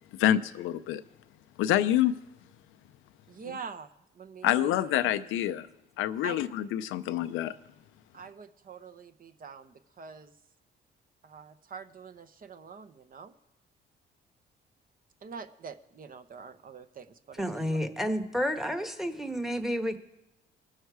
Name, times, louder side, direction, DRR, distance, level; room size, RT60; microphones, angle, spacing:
voice 1, 0.1-1.0 1.6-2.2 4.4-5.7 6.0-7.5, left 12 dB, 90° left, 0.5 m, -27 dB
voice 2, 3.3-3.9 4.1-5.2 6.2-6.4 8.1-10.3 11.2-13.3 15.2-17.4, right 6 dB, 45° right, 0.8 m, -45 dB
voice 3, 17.4-20.0, equal, ahead, 1.1 m, -30 dB
19.5 x 6.5 x 4.7 m
cardioid pair, 90°, 20 cm